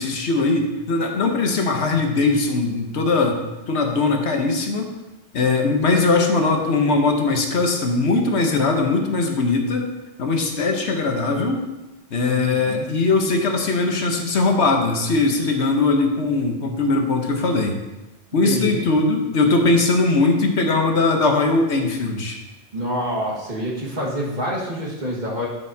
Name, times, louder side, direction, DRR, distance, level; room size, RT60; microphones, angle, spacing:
voice 1, 0.0-3.4 3.7-4.9 5.3-9.9 10.2-11.6 12.1-17.8 18.3-22.4, left 3 dB, 70° left, 3 dB, 1.2 m, -20 dB
voice 2, 12.4-12.9 18.4-18.8 22.7-25.5, equal, 40° right, -4 dB, 1.9 m, -26 dB
12.0 x 6.4 x 2.8 m, 1.0 s
omnidirectional pair, 1.2 m